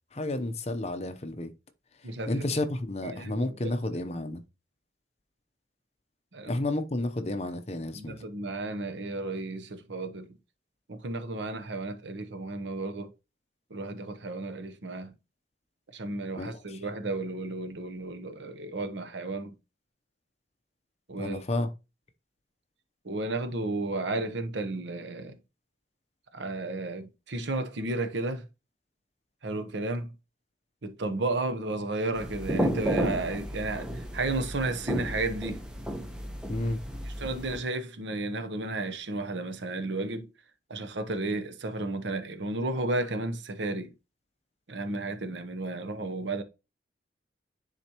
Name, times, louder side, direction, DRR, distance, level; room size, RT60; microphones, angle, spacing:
voice 1, 0.1-1.5 2.2-4.4 6.5-8.2 16.3-16.8 21.2-21.7 36.5-36.8, left 2 dB, 35° left, 0.7 m, -31 dB
voice 2, 2.0-2.5 3.0-3.7 6.3-6.5 7.9-10.3 10.9-13.1 13.7-15.1 15.9-19.5 21.1-21.4 23.0-25.4 26.3-28.5 29.4-30.1 30.8-35.6 37.1-40.3 40.7-43.9 44.7-46.4, right 2 dB, 80° right, 0.9 m, -33 dB
sound 1, 32.1-37.6, equal, 5° right, 0.9 m, -33 dB
10.0 x 4.2 x 3.0 m
head